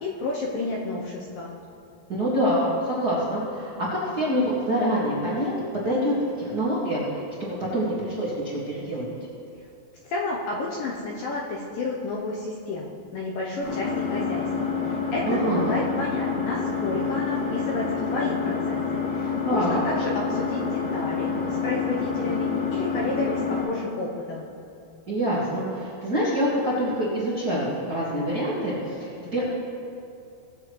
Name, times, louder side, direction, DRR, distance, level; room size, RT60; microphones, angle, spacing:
voice 1, 0.0-1.5 10.0-24.5, left 2 dB, 75° left, -3 dB, 2.2 m, -31 dB
voice 2, 2.1-9.1 15.3-15.8 19.4-19.8 25.1-29.4, equal, 40° right, -9 dB, 1.3 m, -26 dB
Engine, 13.6-23.6, left 5 dB, 50° left, 3.6 m, -28 dB
18.5 x 7.6 x 3.2 m, 2.6 s
omnidirectional pair, 4.8 m